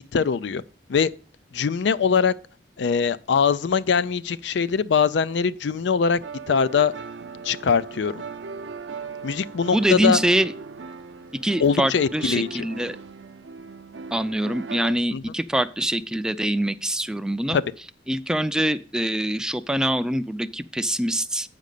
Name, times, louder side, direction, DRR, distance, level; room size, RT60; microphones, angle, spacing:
voice 1, 0.1-0.6 0.9-1.1 1.5-2.3 2.8-6.2 6.5-6.9 7.4-8.2 9.2-10.2 11.6-12.7 15.1-15.2 17.5-17.6, left 6 dB, 75° left, 0.4 m, -22 dB
sound 1, 5.7-14.9, right 4 dB, 80° right, 0.6 m, -38 dB
voice 2, 9.7-10.5 11.4-13.0 14.1-17.6 18.1-21.5, right 1 dB, 5° right, 0.4 m, -24 dB
8.3 x 5.2 x 6.6 m
head